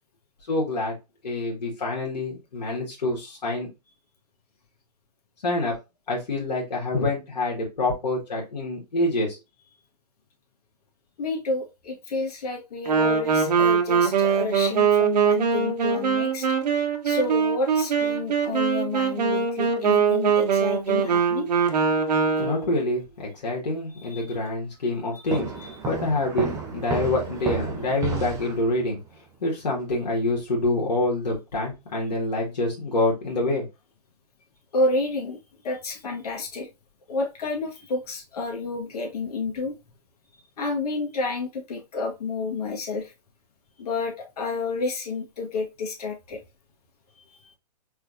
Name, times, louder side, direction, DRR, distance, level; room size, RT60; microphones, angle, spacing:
voice 1, 0.5-0.9 1.2-3.7 5.4-5.7 6.1-9.4 22.4-25.5 25.9-29.0 29.4-33.6, left 2 dB, 90° left, -3 dB, 1.8 m, -26 dB
voice 2, 11.2-16.5 17.0-21.5 24.1-24.3 34.7-35.4 35.6-36.7 37.1-39.7 40.6-43.1 43.8-46.4, left 3 dB, 65° left, 1 dB, 1.7 m, -30 dB
Wind instrument woodwind instrument, 12.9-22.8, right 6 dB, 75° right, 1.1 m, -22 dB
sound 1, 25.3-29.0, right 5 dB, 15° right, 0.6 m, -31 dB
4.5 x 3.4 x 2.6 m, 0.25 s
hypercardioid pair, 140°, 21 cm